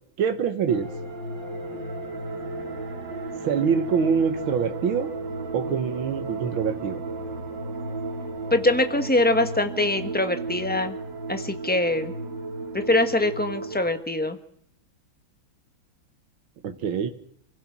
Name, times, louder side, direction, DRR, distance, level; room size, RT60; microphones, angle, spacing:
voice 1, 0.2-0.9 3.4-5.1 5.5-7.0 16.6-17.1, right 6 dB, 90° right, 7 dB, 2.1 m, -25 dB
sound 1, 0.7-13.9, right 2 dB, 65° right, 3.2 m, -34 dB
voice 2, 8.5-10.9 11.3-12.1 12.7-14.4, left 2 dB, 5° left, 8 dB, 1.2 m, -23 dB
29.0 x 16.0 x 6.1 m, 0.70 s
omnidirectional pair, 2.2 m